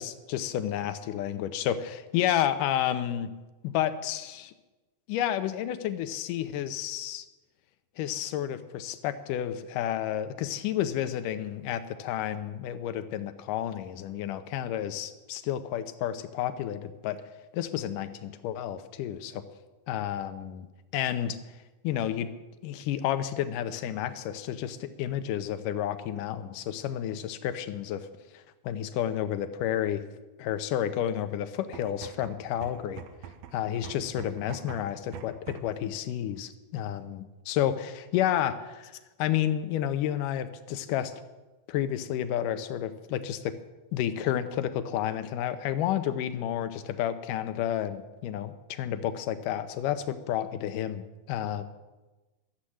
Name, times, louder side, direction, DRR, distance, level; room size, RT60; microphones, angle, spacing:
voice 1, 0.0-3.3 3.6-4.5 5.1-7.3 8.0-17.2 17.5-19.4 19.9-20.7 20.9-21.4 21.8-22.3 22.6-28.1 28.3-30.0 30.4-33.0 33.5-38.9 39.2-41.1 41.7-43.6 43.9-51.6, left 11 dB, 75° left, 11 dB, 2.2 m, -31 dB
sound 1, 31.6-35.8, right 8 dB, 80° right, 1.5 m, -45 dB
13.0 x 7.6 x 9.9 m, 1.1 s
omnidirectional pair, 4.2 m